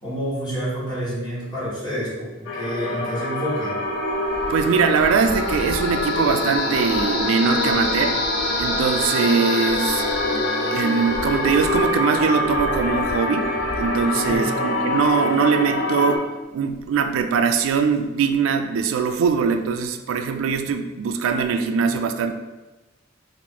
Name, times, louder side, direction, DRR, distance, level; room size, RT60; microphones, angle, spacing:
voice 1, 0.0-3.8 14.1-14.5, equal, 20° left, -9 dB, 1.2 m, -28 dB
sound 1, 2.5-16.2, left 2 dB, 75° left, 0.5 m, -25 dB
sound 2, 3.9-17.2 17.7-18.1 18.3-18.4, right 1 dB, 35° right, 0.6 m, -38 dB
voice 2, 4.5-8.2 8.6-10.1 10.7-16.3 16.5-22.3, right 6 dB, 80° right, 7 dB, 0.3 m, -22 dB
sound 3, 4.9-11.8, left 2 dB, 50° left, 1.2 m, -30 dB
3.0 x 2.5 x 3.7 m, 1.1 s
head